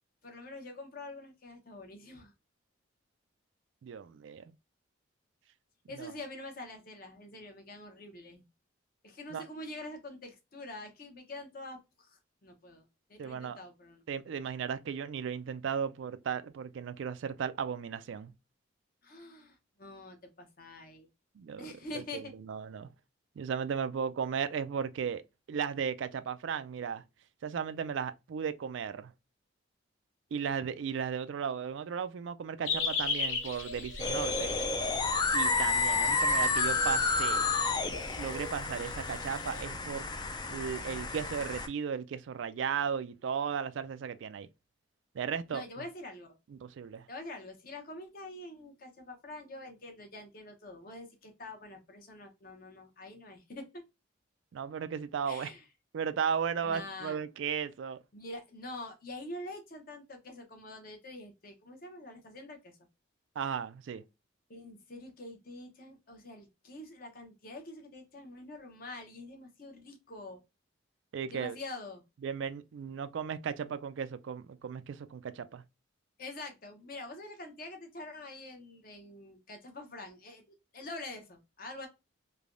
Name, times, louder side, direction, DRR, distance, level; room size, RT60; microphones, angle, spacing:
voice 1, 0.2-2.3 5.9-8.4 9.0-12.8 13.1-14.0 19.0-21.1 21.6-22.3 45.5-46.3 47.1-53.8 55.3-55.6 56.6-57.2 58.1-62.7 64.5-70.4 71.3-72.0 76.2-80.4 80.7-81.9, left 2 dB, 45° left, 0.8 m, -45 dB
voice 2, 3.8-4.4 6.0-6.1 9.3-9.4 13.2-13.6 14.1-18.3 21.4-22.9 23.4-25.2 25.5-27.0 27.4-29.1 30.3-34.6 35.3-37.6 38.2-40.1 40.5-44.5 45.1-45.6 46.5-47.0 54.5-55.5 55.9-58.0 63.4-64.0 71.1-71.6 72.2-75.6, right 7 dB, 70° right, 0.3 m, -35 dB
sound 1, 32.6-39.6, left 4 dB, 90° left, 1.0 m, -38 dB
sound 2, 34.0-41.7, left 3 dB, 20° left, 0.3 m, -30 dB
3.3 x 2.2 x 2.4 m
head